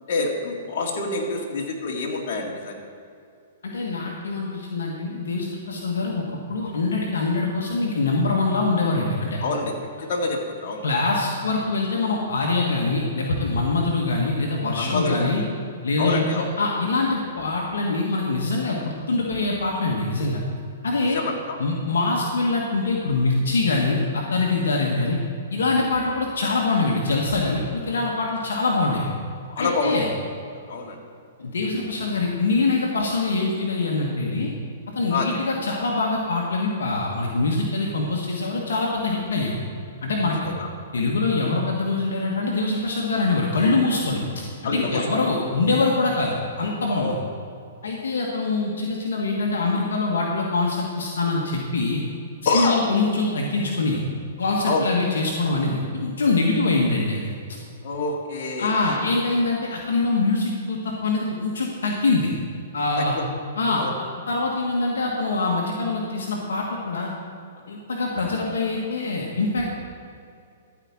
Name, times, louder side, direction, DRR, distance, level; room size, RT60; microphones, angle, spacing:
voice 1, 0.1-2.8 9.4-9.7 10.1-10.8 14.8-15.3 16.0-16.5 21.1-21.6 29.6-30.0 30.7-31.0 35.1-35.3 40.4-40.5 44.6-45.0 47.0-47.1 52.5-52.8 54.7-54.9 57.8-59.0 63.0-63.2 63.8-63.9, left 3 dB, 55° left, -1 dB, 2.1 m, -26 dB
voice 2, 3.6-6.2 6.5-9.4 10.8-15.4 15.8-20.4 20.8-21.2 21.6-25.2 25.5-29.1 29.6-30.1 31.4-34.5 34.9-39.6 40.0-40.5 40.9-44.2 44.6-47.1 47.8-52.0 52.5-54.0 54.4-57.3 58.6-62.3 62.7-63.2 63.6-63.8 64.3-67.1 67.7-69.7, left 3 dB, 80° left, -1 dB, 1.5 m, -24 dB
13.5 x 5.1 x 7.3 m, 2.5 s
hypercardioid pair, 130°, 0 cm